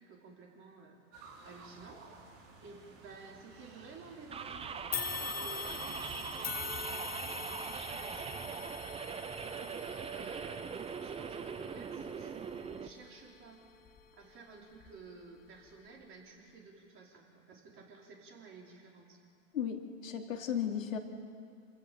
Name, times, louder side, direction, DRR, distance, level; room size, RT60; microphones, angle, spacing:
voice 1, 0.0-2.0 2.6-4.9 5.3-10.7 11.0-19.2, right 4 dB, 30° right, -1 dB, 5.2 m, -53 dB
sound 1, 1.1-7.8, right 4 dB, 50° right, 6.0 m, -55 dB
sound 2, 4.3-12.9, right 6 dB, 15° right, 0.9 m, -41 dB
sound 3, 4.9-14.2 14.7-14.9 15.9-16.0, left 7 dB, 20° left, 1.6 m, -43 dB
voice 2, 19.5-21.0, left 8 dB, 75° left, 2 dB, 3.0 m, -35 dB
27.0 x 15.5 x 8.0 m, 2.4 s
hypercardioid pair, 110°, 40 cm